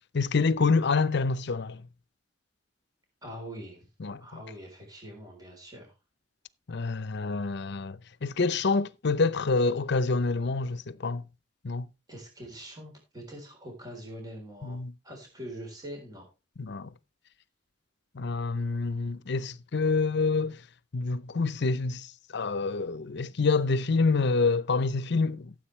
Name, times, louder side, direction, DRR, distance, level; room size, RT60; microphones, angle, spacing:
voice 1, 0.1-1.8 4.0-4.2 6.7-11.2 11.6-11.9 14.6-14.9 16.6-16.9 18.1-20.6 20.9-25.5, left 4 dB, 60° left, 0.7 m, -27 dB
voice 2, 3.2-3.9 4.2-5.9 12.1-14.8 15.0-16.3, equal, 20° right, 3.7 m, -43 dB
15.0 x 7.7 x 3.2 m
head